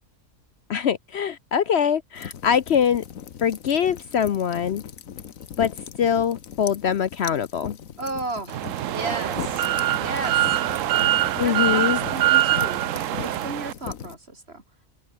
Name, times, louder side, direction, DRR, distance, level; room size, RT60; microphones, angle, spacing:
voice 1, 0.7-3.0 3.4-4.8 5.6-7.8 11.4-12.0, left 8 dB, 60° left, 0.9 m, -23 dB
sound 1, 2.1-14.1, left 8 dB, 80° left, 1.5 m, -39 dB
voice 2, 8.0-8.6 8.9-9.7 10.0-10.6 10.9-11.1 11.4-14.6, right 2 dB, 50° right, 3.7 m, -34 dB
sound 2, 8.5-13.7, right 13 dB, 75° right, 1.0 m, -23 dB
open air
omnidirectional pair, 1.4 m